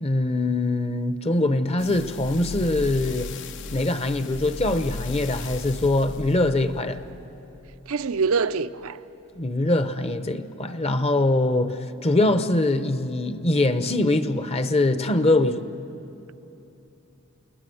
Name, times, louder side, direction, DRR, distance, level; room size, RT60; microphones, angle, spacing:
voice 1, 0.0-3.3 3.7-7.0 9.3-15.7, left 2 dB, 30° left, 0.8 m, -23 dB
sound 1, 1.8-8.3 8.8-8.9, left 3 dB, 60° left, 0.7 m, -37 dB
voice 2, 7.9-9.0, right 5 dB, 80° right, 0.6 m, -24 dB
28.5 x 19.5 x 7.8 m
head